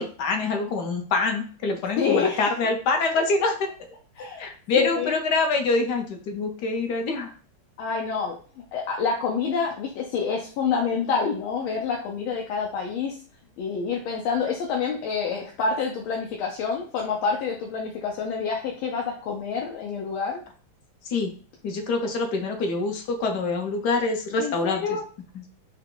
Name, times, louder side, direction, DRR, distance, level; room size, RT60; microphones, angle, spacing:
voice 1, 0.0-3.7 4.4-7.3 21.0-21.3 21.6-25.0 25.3-25.4, left 3 dB, 65° left, 4 dB, 1.2 m, -25 dB
voice 2, 2.0-2.4 4.2-4.5 4.8-5.1 7.8-13.2 13.6-20.4 24.4-25.0, left 5 dB, 85° left, 0 dB, 1.6 m, -27 dB
5.7 x 2.2 x 3.8 m, 0.41 s
omnidirectional pair, 2.2 m